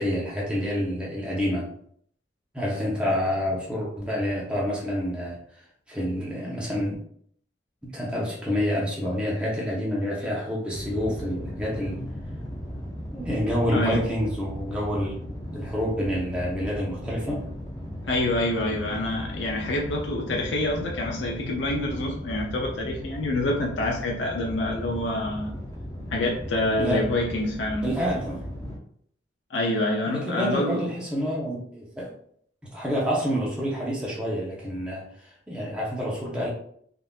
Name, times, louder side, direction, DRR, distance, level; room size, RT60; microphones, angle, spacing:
voice 1, 0.0-1.7 2.5-6.9 7.8-12.0 13.1-15.1 15.5-17.4 26.8-27.0 27.8-28.5 30.1-32.1 32.7-36.5, equal, 5° right, -5 dB, 0.8 m, -28 dB
sound 1, 10.7-28.8, equal, 15° left, 0.5 m, -36 dB
voice 2, 13.7-14.0 18.1-25.6 26.1-27.9 29.5-30.8, left 1 dB, 75° left, -1 dB, 0.5 m, -27 dB
3.6 x 2.7 x 2.4 m, 0.64 s
head